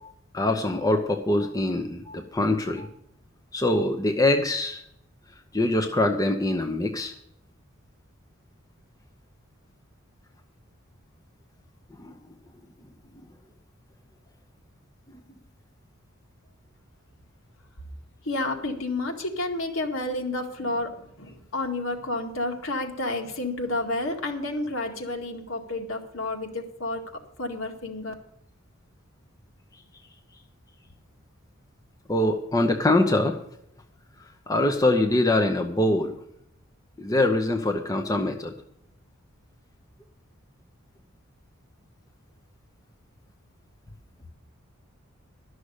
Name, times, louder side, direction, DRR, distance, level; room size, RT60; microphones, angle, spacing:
voice 1, 0.0-2.9 3.5-4.8 5.5-7.1 12.0-12.2 32.1-33.4 34.5-36.2 37.0-38.5, left 1 dB, 15° left, 4 dB, 0.8 m, -24 dB
voice 2, 18.2-27.0 27.4-28.1, left 2 dB, 70° left, 2 dB, 2.1 m, -30 dB
12.5 x 6.4 x 8.2 m, 0.73 s
head